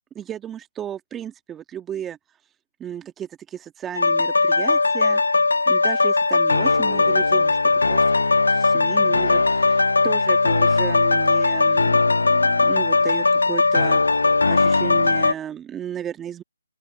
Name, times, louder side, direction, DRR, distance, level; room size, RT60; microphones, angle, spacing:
voice 1, 0.2-2.2 2.8-5.2 5.7-7.6 7.8-8.0 8.5-9.8 10.0-14.0 14.5-16.4, right 9 dB, 10° right, 1.8 m, -34 dB
sound 1, 3.9-15.3, left 3 dB, 85° left, 0.4 m, -19 dB
open air
hypercardioid pair, 155°, 0 cm